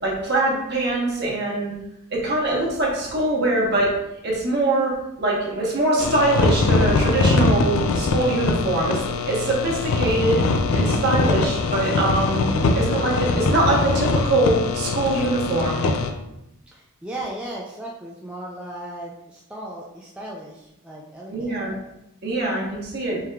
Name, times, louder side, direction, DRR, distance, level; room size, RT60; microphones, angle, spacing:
voice 1, 0.0-1.7 2.1-3.9 4.2-9.0 9.3-10.4 10.7-12.5 12.7-15.8 21.3-21.7 22.2-23.2, right 2 dB, 45° right, -3 dB, 1.0 m, -23 dB
sound 1, 6.0-16.1, left 3 dB, 75° left, 0.4 m, -22 dB
voice 2, 16.7-21.6, right 1 dB, 5° right, -5 dB, 0.3 m, -36 dB
4.7 x 3.4 x 2.2 m, 0.87 s
head